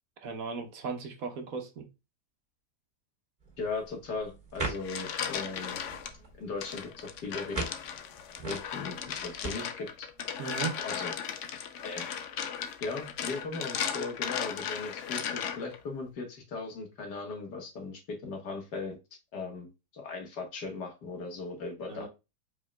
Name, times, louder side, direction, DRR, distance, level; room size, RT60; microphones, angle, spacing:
voice 1, 0.2-1.9 10.4-10.8 21.9-22.1, right 5 dB, 60° right, 5 dB, 1.3 m, -36 dB
sound 1, 3.4-9.5, right 3 dB, 25° right, 2.2 m, -41 dB
voice 2, 3.6-5.8 6.4-7.6 8.5-10.1 10.8-11.1 11.8-12.1 12.8-19.0 19.3-22.1, left 3 dB, 80° left, 2 dB, 2.1 m, -38 dB
sound 2, 4.6-6.1 6.6-15.8, left 8 dB, 60° left, 0.9 m, -36 dB
5.0 x 4.7 x 2.2 m, 0.25 s
omnidirectional pair, 1.8 m